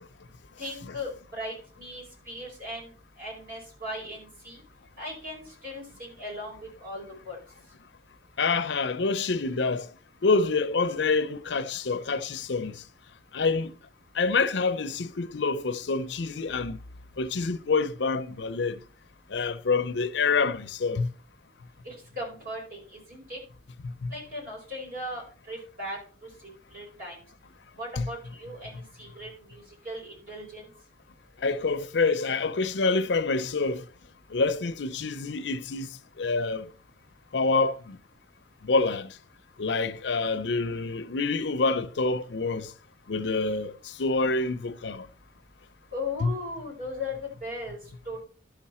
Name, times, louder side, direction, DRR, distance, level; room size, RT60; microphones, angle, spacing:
voice 1, 0.6-4.6 5.0-7.4 21.8-23.4 24.1-27.2 27.8-30.7 45.9-47.8 48.0-48.3, left 1 dB, 50° right, 4.7 m, -38 dB
voice 2, 8.4-9.9 10.2-12.8 13.3-13.7 14.1-16.8 17.2-18.8 19.3-21.1 23.8-24.1 28.0-28.1 31.4-33.8 34.3-36.7 37.3-38.0 38.6-39.2 39.6-42.7 43.1-45.1 46.2-46.3, left 4 dB, 80° left, 0.6 m, -27 dB
11.5 x 5.9 x 4.3 m
head